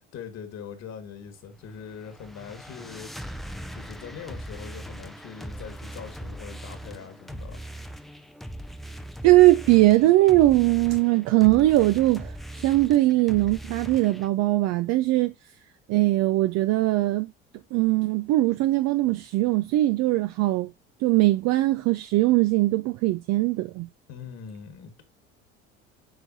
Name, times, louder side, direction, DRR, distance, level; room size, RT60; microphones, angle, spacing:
voice 1, 0.0-3.1 3.7-7.6 24.1-25.0, left 7 dB, 50° left, 1.8 m, -42 dB
sound 1, 1.6-14.3, right 1 dB, ahead, 0.5 m, -40 dB
voice 2, 9.2-12.4 12.6-15.3 15.9-17.3 17.7-20.7 21.0-23.9, right 17 dB, 55° right, 0.5 m, -20 dB
8.0 x 4.6 x 2.7 m
hypercardioid pair, 65°, 33 cm